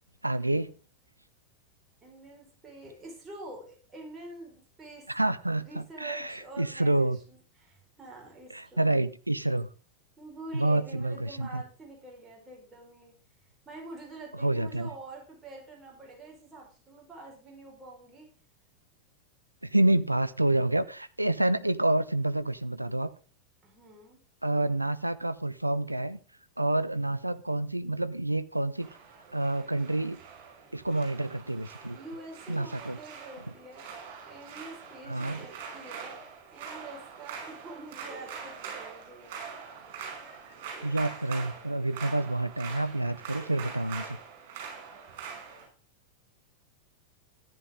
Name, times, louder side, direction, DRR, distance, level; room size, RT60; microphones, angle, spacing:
voice 1, 0.2-0.7 5.1-7.2 8.5-9.7 10.5-11.6 14.4-14.9 19.6-23.1 24.4-26.2 26.6-28.9 29.3-30.2 30.7-32.0 32.5-33.0 35.1-35.4 40.8-44.2, right 2 dB, 85° right, 15 dB, 0.5 m, -28 dB
voice 2, 2.0-5.1 5.5-9.0 10.2-13.1 13.6-18.3 23.6-24.2 31.9-36.1 36.5-39.4, right 2 dB, 20° right, -1 dB, 4.9 m, -46 dB
sound 1, 28.8-45.7, right 6 dB, 50° right, 5.8 m, -43 dB
14.5 x 10.5 x 3.7 m, 0.37 s
figure-of-eight pair, 90°, 0 cm